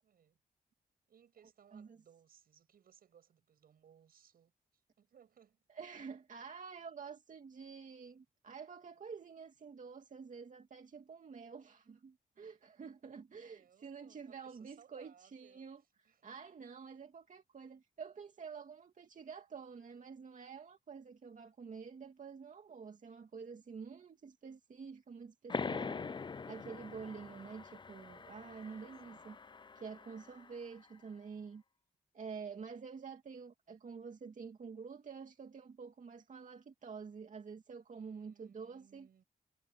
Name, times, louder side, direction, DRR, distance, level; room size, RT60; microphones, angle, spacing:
voice 1, 0.0-0.4 1.1-5.6 13.3-15.7 16.0-16.3 16.7-16.8 28.6-29.4 37.9-39.2, right 8 dB, 80° right, 6.6 m, -65 dB
voice 2, 5.7-15.8 16.2-26.1 26.5-29.4 29.7-31.6 32.1-39.1, right 5 dB, 55° right, 2.4 m, -49 dB
sound 1, 25.5-30.7, left 5 dB, 30° left, 0.5 m, -44 dB
cardioid pair, 75°, 15 cm